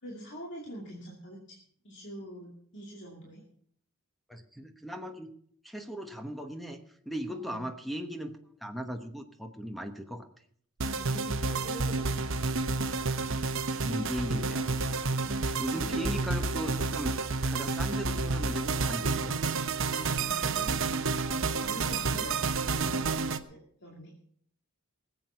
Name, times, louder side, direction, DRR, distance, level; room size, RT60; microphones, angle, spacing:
voice 1, 0.0-3.4 7.3-7.7 10.8-12.2 15.2-16.2 20.1-21.0 21.3-24.1, right 1 dB, 55° left, -3 dB, 2.5 m, -45 dB
voice 2, 4.3-5.3 5.6-6.8 7.1-10.3 13.8-17.1 17.5-19.5, equal, ahead, 6 dB, 1.0 m, -38 dB
sound 1, 10.8-23.4, right 4 dB, 60° right, 0.9 m, -30 dB
19.5 x 8.0 x 5.7 m, 0.62 s
head